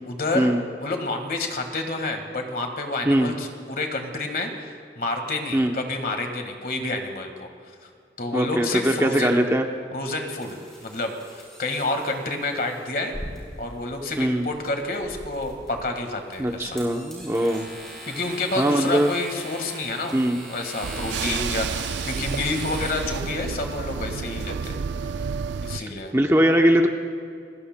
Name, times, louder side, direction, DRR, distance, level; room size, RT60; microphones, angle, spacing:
voice 1, 0.0-0.5 0.8-7.5 8.2-9.4 9.9-11.1 11.6-13.1 13.6-16.8 18.0-24.8 25.6-26.1, left 2 dB, 50° left, 4 dB, 1.6 m, -29 dB
voice 2, 8.3-9.7 14.2-14.5 16.4-17.7 18.6-19.1 20.1-20.4 21.2-21.6 26.1-26.9, right 1 dB, 15° right, 3 dB, 0.7 m, -21 dB
sound 1, 10.4-22.9, equal, 5° left, 4.9 m, -41 dB
sound 2, 20.8-25.8, right 5 dB, 85° right, 0.4 m, -30 dB
29.5 x 16.5 x 2.2 m, 2.4 s
head